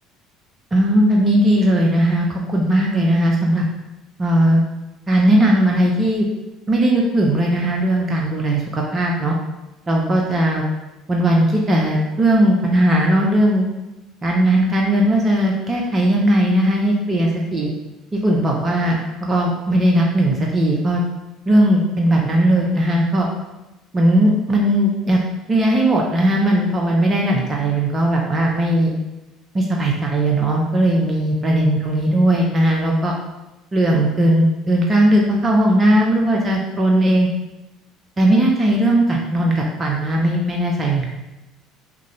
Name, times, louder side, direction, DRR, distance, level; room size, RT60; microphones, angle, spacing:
voice 1, 0.7-3.6 4.2-4.6 5.1-6.3 6.7-9.3 9.9-10.7 11.1-13.7 14.2-17.7 18.1-21.0 21.5-23.3 23.9-25.2 25.5-29.0 29.5-33.1 33.7-37.3 38.2-41.1, right 1 dB, 25° right, -1 dB, 0.6 m, -17 dB
3.7 x 2.7 x 3.1 m, 1.0 s
figure-of-eight pair, 60°, 0 cm